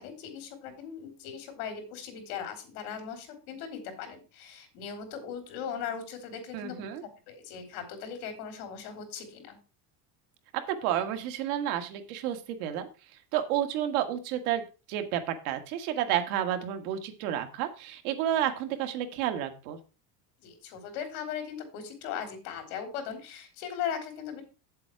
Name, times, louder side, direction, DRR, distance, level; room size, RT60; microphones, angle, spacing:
voice 1, 0.0-9.6 20.4-24.4, left 7 dB, 70° left, 6 dB, 3.6 m, -39 dB
voice 2, 6.5-7.0 10.5-12.9 13.3-14.6 14.9-19.8, right 11 dB, 90° right, 7 dB, 1.7 m, -30 dB
8.6 x 7.6 x 4.6 m, 0.33 s
cardioid pair, 175°, 43 cm